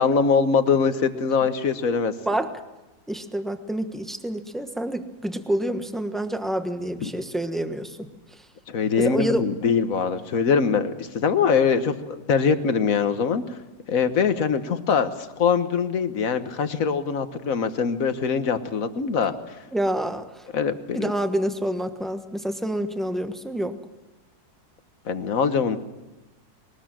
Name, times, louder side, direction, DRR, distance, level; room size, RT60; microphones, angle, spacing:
voice 1, 0.0-2.1 7.0-7.1 8.7-13.6 13.9-19.3 20.5-21.1 25.1-25.8, left 6 dB, 50° left, 10 dB, 1.5 m, -23 dB
voice 2, 3.1-8.1 9.0-9.4 19.7-20.5 20.9-23.8, right 1 dB, ahead, 7 dB, 1.0 m, -27 dB
21.5 x 20.0 x 7.6 m, 1.0 s
omnidirectional pair, 2.0 m